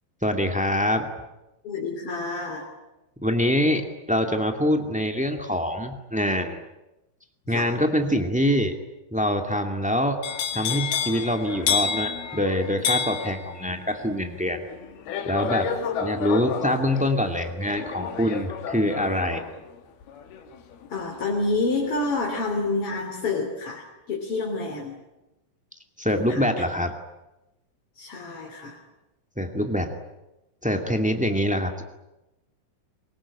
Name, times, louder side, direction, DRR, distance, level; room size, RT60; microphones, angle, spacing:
voice 1, 0.2-1.1 3.2-6.6 7.5-8.8 9.1-10.2 10.5-14.6 15.2-15.7 16.0-19.5 26.0-26.9 29.4-29.9 30.6-31.8, equal, 10° right, 4 dB, 0.5 m, -24 dB
voice 2, 1.6-2.7 7.5-7.7 15.8-15.9 20.9-25.0 26.1-26.4 27.9-28.8, left 3 dB, 35° left, 1 dB, 3.7 m, -28 dB
sound 1, 10.2-22.2 22.5-23.0, left 7 dB, 70° left, 3.8 m, -31 dB
24.5 x 22.0 x 10.0 m, 0.97 s
omnidirectional pair, 4.7 m